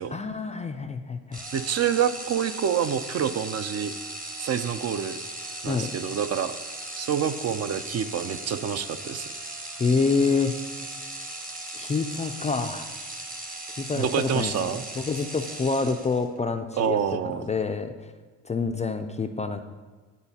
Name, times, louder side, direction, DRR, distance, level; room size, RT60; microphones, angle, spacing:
voice 1, 0.1-1.4 5.7-5.9 9.8-10.6 11.7-12.9 13.8-14.7 15.0-17.0 17.3-17.9 18.5-19.6, left 4 dB, 20° left, 7 dB, 0.3 m, -27 dB
sound 1, 1.3-16.4, right 2 dB, 20° right, 1.0 m, -38 dB
voice 2, 1.5-3.9 4.4-5.2 5.6-6.5 7.0-9.3 13.9-14.8 16.8-17.5, right 8 dB, 45° right, 11 dB, 0.4 m, -27 dB
11.0 x 4.0 x 2.8 m, 1.4 s
supercardioid pair, 65°, 37 cm